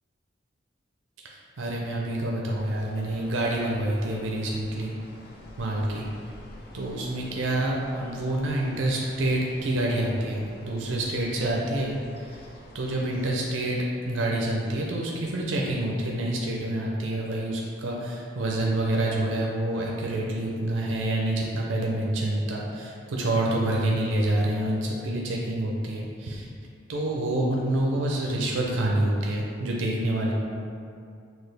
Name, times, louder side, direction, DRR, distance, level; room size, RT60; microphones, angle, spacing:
voice 1, 1.2-4.9 5.6-6.1 6.7-12.4 12.7-13.8 14.1-26.5 26.9-30.3, right 1 dB, 80° right, -2 dB, 0.5 m, -27 dB
sound 1, 2.4-13.3, left 1 dB, 50° left, 0.5 m, -48 dB
6.0 x 2.4 x 3.3 m, 2.5 s
head